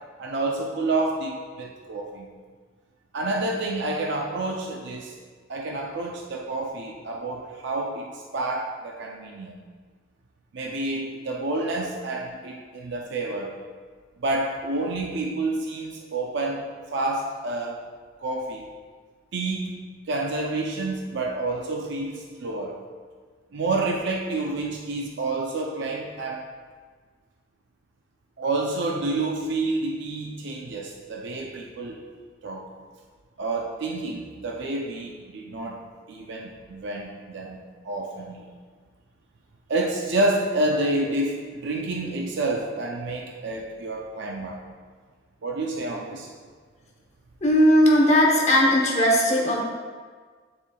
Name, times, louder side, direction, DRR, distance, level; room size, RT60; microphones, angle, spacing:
voice 1, 0.2-2.3 3.1-5.2 5.5-9.5 10.5-13.5 14.2-17.8 18.2-18.7 19.3-19.8 20.1-22.8 23.5-26.5 28.4-32.0 32.4-32.7 33.4-35.8 36.1-38.4 39.7-44.6 45.4-46.3, right 2 dB, 60° right, 0 dB, 0.5 m, -29 dB
voice 2, 47.4-49.6, equal, 35° left, -2 dB, 0.9 m, -18 dB
9.8 x 4.2 x 2.3 m, 1.5 s
head